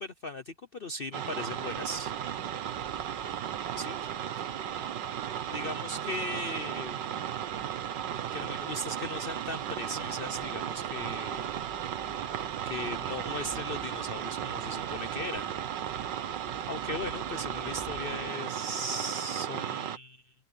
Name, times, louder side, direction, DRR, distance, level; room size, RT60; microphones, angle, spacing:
voice 1, 0.0-2.1 3.8-3.9 5.5-7.0 8.3-11.6 12.6-15.5 16.7-20.3, left 1 dB, 50° left, 0.7 m, -38 dB
sound 1, 1.1-20.0, right 10 dB, 90° right, 1.8 m, -35 dB
sound 2, 1.5-18.3, right 1 dB, 15° right, 5.3 m, -54 dB
voice 2, 3.3-6.4, left 3 dB, 75° left, 7.2 m, -62 dB
omnidirectional pair, 1.9 m